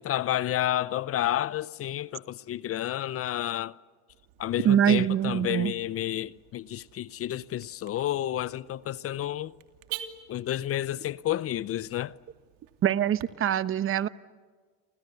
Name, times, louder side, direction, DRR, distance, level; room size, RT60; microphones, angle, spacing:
voice 1, 0.0-3.8 4.4-9.5 10.3-12.1, left 12 dB, 40° left, 0.7 m, -30 dB
Car / Alarm, 4.1-13.3, right 11 dB, 70° right, 2.8 m, -48 dB
voice 2, 4.6-5.7 12.8-14.1, right 10 dB, 35° right, 1.0 m, -24 dB
29.5 x 26.0 x 6.9 m
supercardioid pair, 105°, 36 cm